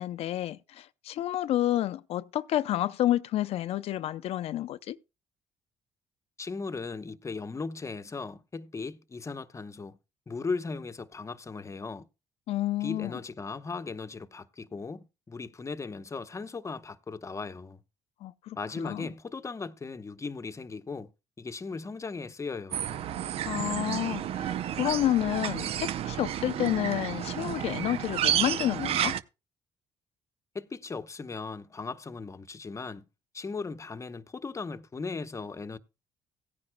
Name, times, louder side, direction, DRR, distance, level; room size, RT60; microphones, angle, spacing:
voice 1, 0.0-5.0 12.5-13.2 18.2-19.1 23.5-29.2, left 13 dB, 65° left, 0.6 m, -30 dB
voice 2, 6.4-10.0 10.3-12.1 12.8-17.8 18.5-21.1 21.4-22.9 30.5-33.0 33.3-35.8, left 4 dB, 25° left, 0.9 m, -37 dB
sound 1, 22.7-29.2, right 11 dB, 65° right, 0.6 m, -31 dB
17.0 x 9.7 x 2.2 m
supercardioid pair, 65°, 11 cm